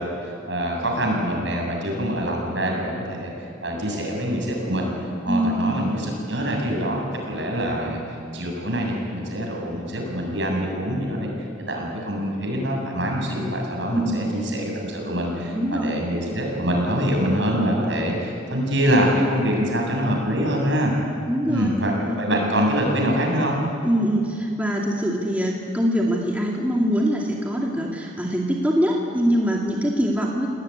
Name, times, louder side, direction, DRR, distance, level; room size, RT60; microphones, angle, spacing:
voice 1, 0.0-3.3 3.6-4.9 5.2-8.0 8.3-11.3 11.7-20.9 21.5-23.6, equal, 65° right, 0 dB, 7.2 m, -24 dB
voice 2, 5.3-5.6 13.9-14.3 15.5-16.0 21.3-21.7 22.1-22.2 23.8-30.5, equal, 10° right, -2 dB, 2.4 m, -23 dB
28.5 x 19.0 x 9.8 m, 2.4 s
head